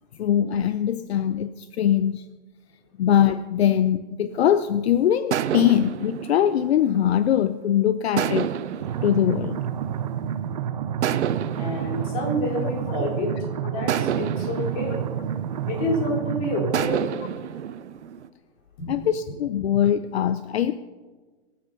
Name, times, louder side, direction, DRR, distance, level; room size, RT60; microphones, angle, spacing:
voice 1, 0.1-2.3 3.0-8.5 9.0-9.6 15.6-15.7 18.9-20.7, left 10 dB, 65° left, 12 dB, 0.7 m, -22 dB
sound 1, 4.4-4.7 5.3-7.6 8.2-10.4 11.0-13.2 13.9-16.1 16.7-18.3, right 9 dB, 85° right, 0.9 m, -30 dB
sound 2, 8.8-16.8, right 9 dB, 35° right, 0.6 m, -29 dB
voice 2, 11.6-13.3 13.7-15.0 15.7-17.1 18.8-18.9, left 1 dB, 30° left, -1 dB, 4.2 m, -28 dB
22.5 x 9.6 x 5.5 m, 1.4 s
hypercardioid pair, 170°, 34 cm